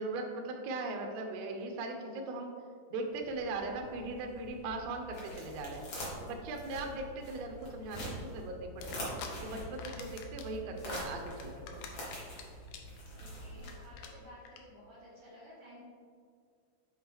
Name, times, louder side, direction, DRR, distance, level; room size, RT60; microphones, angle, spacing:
voice 1, 0.0-2.5 2.9-5.8 6.2-9.0 9.4-11.7, right 2 dB, 80° right, 2 dB, 1.5 m, -39 dB
sound 1, 3.1-14.2, equal, 50° left, 1.6 m, -45 dB
sound 2, 8.8-9.3 9.6-10.5 10.8-12.4 12.7-13.0 13.3-13.4 13.6-13.7 14.0-14.1 14.5-14.6, left 8 dB, 85° left, 2.3 m, -46 dB
voice 2, 13.1-15.8, equal, 50° right, -12 dB, 2.5 m, -54 dB
7.8 x 4.3 x 3.5 m, 2.2 s
omnidirectional pair, 3.9 m